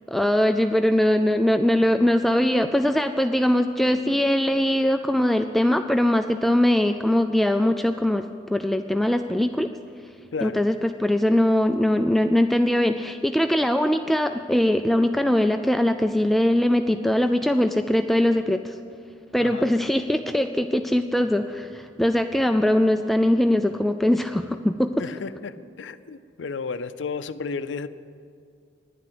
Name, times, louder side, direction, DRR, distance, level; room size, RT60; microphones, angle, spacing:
voice 1, 0.1-9.7 10.4-18.7 19.3-25.1, left 1 dB, ahead, 7 dB, 0.3 m, -21 dB
voice 2, 25.0-25.5 25.8-27.9, left 5 dB, 80° left, 13 dB, 0.5 m, -32 dB
11.0 x 10.0 x 9.2 m, 2.3 s
head